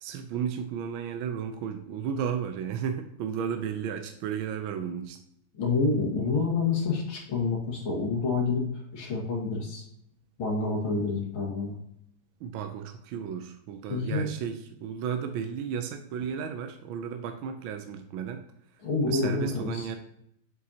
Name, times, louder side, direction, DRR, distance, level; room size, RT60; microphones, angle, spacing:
voice 1, 0.0-5.2 12.4-18.4 19.1-20.0, right 7 dB, 75° right, 6 dB, 1.4 m, -33 dB
voice 2, 5.5-8.7 8.9-9.9 10.4-11.7 13.9-14.3 18.8-19.9, left 4 dB, 70° left, -2 dB, 2.8 m, -28 dB
7.8 x 5.3 x 2.8 m, 0.76 s
omnidirectional pair, 2.4 m